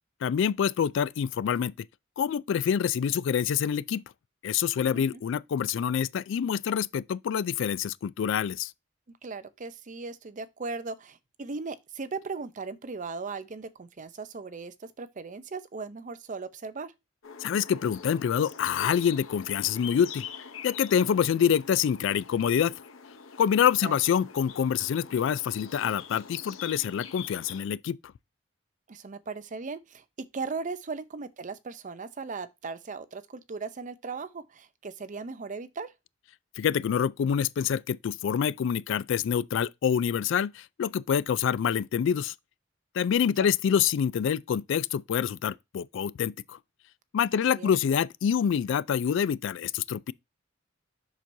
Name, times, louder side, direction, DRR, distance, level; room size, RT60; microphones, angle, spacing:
voice 1, 0.2-1.7 2.2-4.0 4.4-8.7 17.4-20.3 20.6-22.7 23.4-28.0 36.6-42.3 42.9-46.6 47.1-50.1, left 8 dB, 65° left, 0.3 m, -26 dB
voice 2, 9.2-16.9 23.8-24.0 28.9-30.0 30.3-35.9 43.4-43.5 47.5-47.7, right 4 dB, 40° right, 0.6 m, -38 dB
sound 1, 17.2-27.6, left 7 dB, 85° left, 0.7 m, -44 dB
7.1 x 6.1 x 2.6 m
head